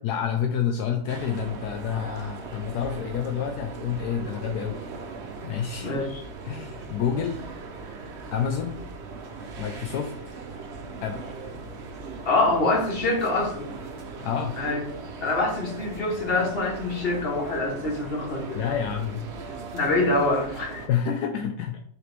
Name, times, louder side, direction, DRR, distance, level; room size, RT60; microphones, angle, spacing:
voice 1, 0.0-4.8 5.4-6.0 6.4-7.4 8.3-8.8 9.6-10.1 11.0-11.2 14.2-14.6 18.5-19.6 20.9-21.8, left 8 dB, 75° left, 5 dB, 1.1 m, -28 dB
sound 1, 1.1-20.9, right 4 dB, 50° right, 0.9 m, -39 dB
voice 2, 5.8-6.2 12.2-13.7 14.6-14.8 15.2-18.6 19.7-20.8, left 2 dB, 35° left, 0 dB, 1.6 m, -25 dB
6.7 x 4.2 x 3.5 m, 0.63 s
omnidirectional pair, 1.8 m